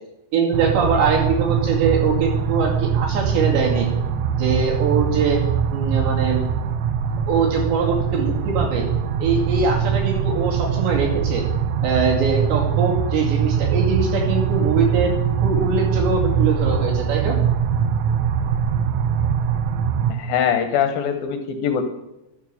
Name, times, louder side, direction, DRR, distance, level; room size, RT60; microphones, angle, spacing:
voice 1, 0.3-3.9 4.4-5.4 5.7-6.4 7.3-8.9 9.2-11.5 11.8-15.1 15.4-17.3, right 5 dB, 75° right, -1 dB, 4.6 m, -22 dB
sound 1, 0.5-20.1, right 7 dB, 90° right, 3.2 m, -22 dB
voice 2, 20.1-21.8, left 8 dB, 75° left, 7 dB, 2.3 m, -22 dB
11.5 x 10.0 x 7.0 m, 0.94 s
omnidirectional pair, 5.2 m